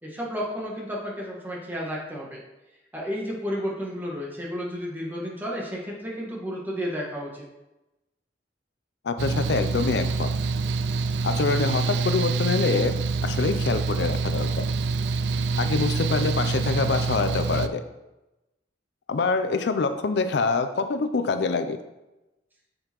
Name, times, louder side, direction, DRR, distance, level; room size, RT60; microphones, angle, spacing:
voice 1, 0.0-2.4 2.9-7.4, equal, 10° right, -3 dB, 1.4 m, -32 dB
voice 2, 9.0-10.3 11.2-14.6 15.6-17.8 19.1-21.8, left 4 dB, 65° left, 9 dB, 0.4 m, -25 dB
Mechanical fan, 9.2-17.7, right 4 dB, 70° right, 0.4 m, -26 dB
7.3 x 6.8 x 3.0 m, 0.99 s
head